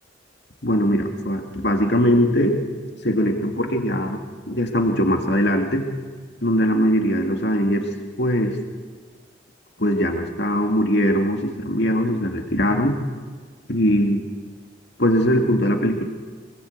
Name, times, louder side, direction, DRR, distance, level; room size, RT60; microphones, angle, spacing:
voice 1, 0.6-2.6 3.0-4.2 4.5-5.9 6.4-7.9 8.2-8.6 9.8-13.0 13.7-14.2 15.0-16.0, equal, 60° left, 3 dB, 2.4 m, -21 dB
23.5 x 20.0 x 8.2 m, 1.5 s
head